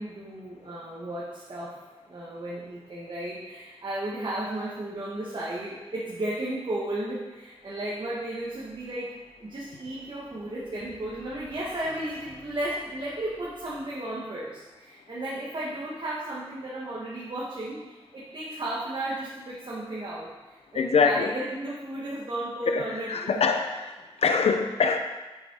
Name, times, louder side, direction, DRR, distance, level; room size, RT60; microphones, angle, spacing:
voice 1, 0.0-1.8 2.1-23.3, right 1 dB, 50° right, -7 dB, 2.0 m, -34 dB
voice 2, 20.7-21.3 22.7-25.0, left 5 dB, 85° left, 6 dB, 0.8 m, -24 dB
8.6 x 7.7 x 4.9 m, 1.2 s
wide cardioid pair, 80°, 10 cm